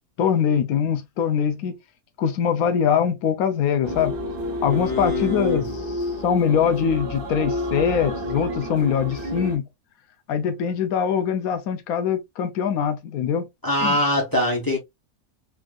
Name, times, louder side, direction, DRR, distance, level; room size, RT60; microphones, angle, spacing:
voice 1, 0.2-1.7 2.2-4.1 4.6-5.6 6.2-9.7 10.3-13.5 13.8-14.0, left 7 dB, 70° left, 1.1 m, -23 dB
sound 1, 3.8-9.6, left 1 dB, 60° right, 0.5 m, -29 dB
voice 2, 4.6-5.7 13.6-14.8, left 1 dB, 25° left, 0.5 m, -23 dB
3.5 x 2.5 x 2.3 m
omnidirectional pair, 1.6 m